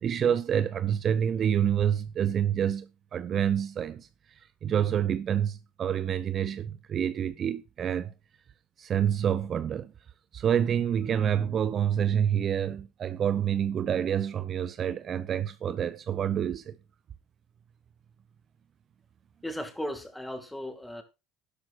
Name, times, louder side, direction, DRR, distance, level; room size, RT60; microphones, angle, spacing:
voice 1, 0.0-4.1 4.6-8.1 8.8-9.9 10.3-16.8, right 9 dB, 40° right, 0.6 m, -27 dB
voice 2, 19.4-21.0, equal, 5° left, 2.3 m, -36 dB
12.0 x 12.0 x 2.5 m
supercardioid pair, 105°, 0 cm